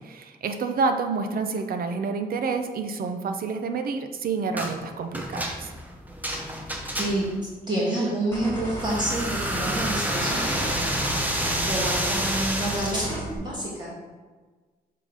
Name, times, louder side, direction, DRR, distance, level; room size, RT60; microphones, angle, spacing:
voice 1, 0.0-5.7, right 4 dB, 65° right, 7 dB, 0.6 m, -28 dB
sound 1, 4.6-4.8 5.1-7.4 8.8-13.0, right 1 dB, 10° right, 0.8 m, -29 dB
voice 2, 7.7-10.9 11.4-13.9, right 1 dB, 30° right, -5 dB, 1.4 m, -28 dB
sound 2, 8.3-13.4, right 1 dB, 15° left, 2.0 m, -34 dB
6.7 x 3.8 x 4.9 m, 1.4 s
wide cardioid pair, 140°, 16 cm